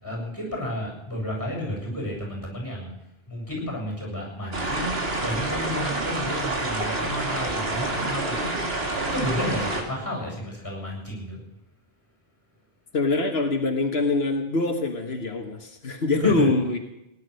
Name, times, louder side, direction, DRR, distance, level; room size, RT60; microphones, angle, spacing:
voice 1, 0.0-2.9 3.3-8.5 9.0-11.4 16.2-16.5, equal, 20° left, 0 dB, 7.5 m, -31 dB
sound 1, 4.5-9.8, right 2 dB, 75° right, 2.5 m, -28 dB
voice 2, 12.9-16.8, left 3 dB, 85° left, 4 dB, 1.7 m, -24 dB
18.5 x 10.5 x 6.5 m, 0.86 s
omnidirectional pair, 1.0 m